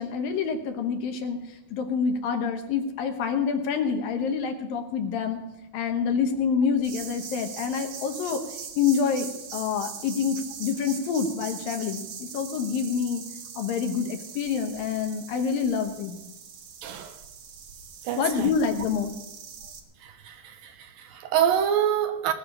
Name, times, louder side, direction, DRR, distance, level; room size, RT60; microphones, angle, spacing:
voice 1, 0.0-5.4 5.7-8.4 8.8-13.2 13.6-16.2 18.2-19.1, left 6 dB, 70° left, 2.6 m, -27 dB
sound 1, 6.8-19.8, right 6 dB, 60° right, 1.9 m, -41 dB
voice 2, 16.8-17.2 18.0-18.5 20.0-22.3, right 9 dB, 75° right, 2.2 m, -26 dB
19.5 x 6.5 x 8.7 m
omnidirectional pair, 4.7 m